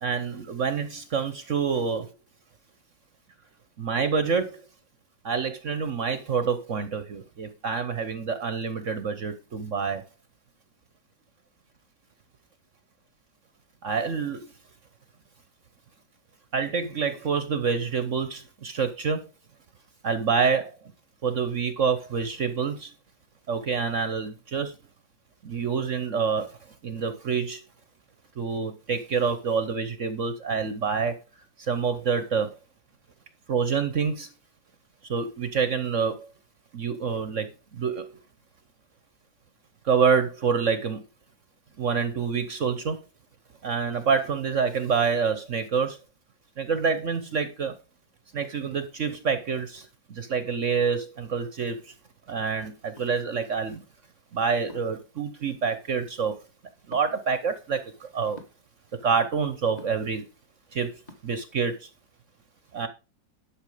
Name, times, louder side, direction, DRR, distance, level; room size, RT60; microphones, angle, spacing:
voice 1, 0.0-2.1 3.8-4.6 5.2-10.0 13.8-14.5 16.5-19.2 20.0-20.7 21.2-22.9 23.5-24.7 25.4-26.6 26.8-27.6 28.4-31.1 31.6-32.5 33.5-34.3 35.0-36.3 36.7-38.1 39.8-41.0 41.8-43.0 43.6-46.0 46.6-47.8 48.3-51.9 52.3-53.8 54.3-56.3 56.9-58.4 59.0-60.2 60.7-61.9 62.7-62.9, right 5 dB, 50° right, 1.1 m, -27 dB
sound 1, 52.9-53.1 54.7-55.0 56.9-57.1 58.3-58.6 59.8-60.1 61.1-61.2, left 1 dB, 25° left, 1.6 m, -47 dB
11.5 x 6.4 x 4.9 m
omnidirectional pair, 2.0 m